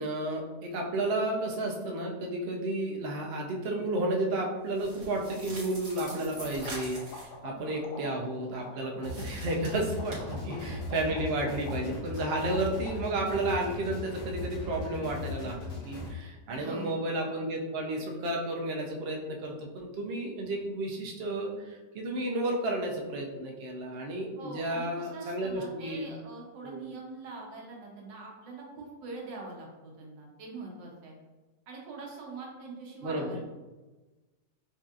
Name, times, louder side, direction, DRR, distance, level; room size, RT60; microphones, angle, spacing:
voice 1, 0.0-10.2 10.4-15.6 15.8-26.1 26.6-26.9 33.0-33.3, right 1 dB, 70° right, 0 dB, 0.6 m, -32 dB
sound 1, 4.7-7.3 9.0-10.1, right 2 dB, 45° right, 1.2 m, -44 dB
sound 2, 5.3-5.4 5.6-5.7 6.0-13.3, left 3 dB, 75° left, 1.1 m, -47 dB
sound 3, 9.0-16.1, left 2 dB, 55° left, 1.4 m, -38 dB
voice 2, 10.2-10.7 16.5-16.9 24.4-31.1 31.7-33.4, right 3 dB, 85° right, -1 dB, 1.5 m, -43 dB
5.2 x 2.7 x 2.4 m, 1.2 s
omnidirectional pair, 1.9 m